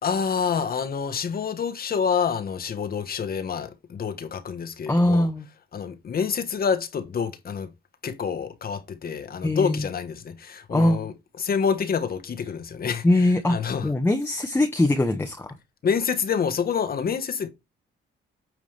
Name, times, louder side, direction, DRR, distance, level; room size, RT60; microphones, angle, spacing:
voice 1, 0.0-5.3 5.7-7.7 8.0-13.0 13.5-13.8 15.8-17.5, left 6 dB, 50° left, 1.4 m, -27 dB
voice 2, 4.9-5.5 9.4-9.9 10.7-11.1 13.0-13.6 13.8-15.5, left 1 dB, 10° left, 1.1 m, -22 dB
9.4 x 4.8 x 3.4 m
cardioid pair, 90°, 20 cm